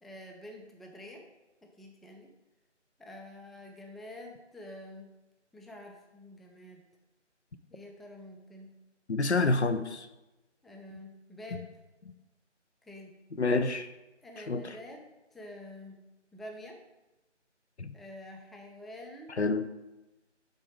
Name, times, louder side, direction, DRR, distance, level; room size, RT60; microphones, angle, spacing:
voice 1, 0.0-1.3 1.6-2.3 3.0-5.1 5.5-6.8 7.7-8.7 10.6-11.7 12.8-13.2 14.2-16.0 16.3-16.8 17.9-19.4, left 1 dB, ahead, 1 dB, 0.4 m, -47 dB
voice 2, 9.1-10.1 13.4-13.9 14.5-14.6 17.8-17.9 19.4-19.7, left 3 dB, 65° left, 11 dB, 0.6 m, -27 dB
8.1 x 4.0 x 4.9 m, 1.0 s
figure-of-eight pair, 165°, 36 cm